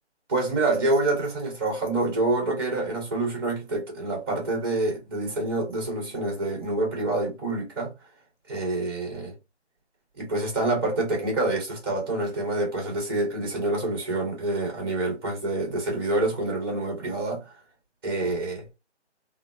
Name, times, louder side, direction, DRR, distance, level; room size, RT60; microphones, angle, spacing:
voice 1, 0.3-7.9 8.5-9.3 10.2-17.4 18.0-18.6, right 2 dB, 20° right, 1.3 m, -27 dB
3.4 x 2.0 x 2.7 m
figure-of-eight pair, 165°, 35 cm